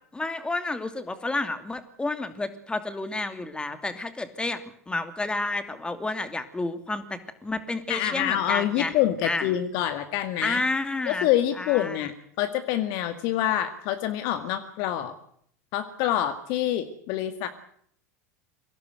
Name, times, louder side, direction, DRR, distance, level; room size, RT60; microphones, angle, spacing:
voice 1, 0.1-4.6 4.9-8.9 9.2-9.6 10.4-11.3 11.5-12.1, left 2 dB, 10° left, 10 dB, 2.7 m, -30 dB
voice 2, 7.9-10.6 11.1-15.2 15.7-17.5, left 12 dB, 50° left, 9 dB, 2.0 m, -26 dB
24.5 x 17.0 x 8.0 m, 0.67 s
figure-of-eight pair, 85°, 8 cm